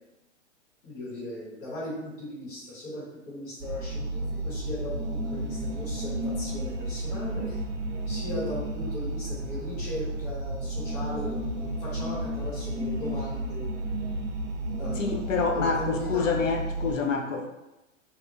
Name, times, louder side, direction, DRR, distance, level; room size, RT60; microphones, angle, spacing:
voice 1, 0.8-7.6 8.1-11.5 11.8-13.7 14.8-16.3, left 1 dB, 50° left, -8 dB, 1.2 m, -38 dB
sound 1, 3.6-16.9, right 1 dB, 60° right, 0.5 m, -32 dB
voice 2, 15.0-17.5, left 4 dB, 80° left, 2 dB, 0.5 m, -27 dB
2.7 x 2.1 x 2.6 m, 0.99 s
figure-of-eight pair, 105°, 39 cm